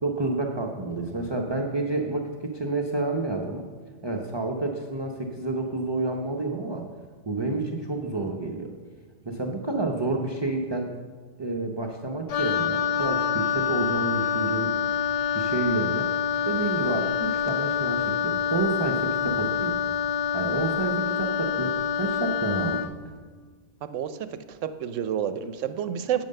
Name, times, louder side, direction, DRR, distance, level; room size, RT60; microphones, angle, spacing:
voice 1, 0.0-3.6 4.0-6.8 7.3-8.7 9.2-10.9 11.4-14.8 15.3-16.1 16.4-19.8 20.3-22.8, right 2 dB, 25° right, 1 dB, 0.7 m, -29 dB
Wind instrument woodwind instrument, 12.3-22.9, left 8 dB, 85° left, 0.3 m, -26 dB
voice 2, 23.8-26.2, right 9 dB, 90° right, 11 dB, 1.0 m, -30 dB
9.1 x 8.6 x 6.6 m, 1.5 s
omnidirectional pair, 1.3 m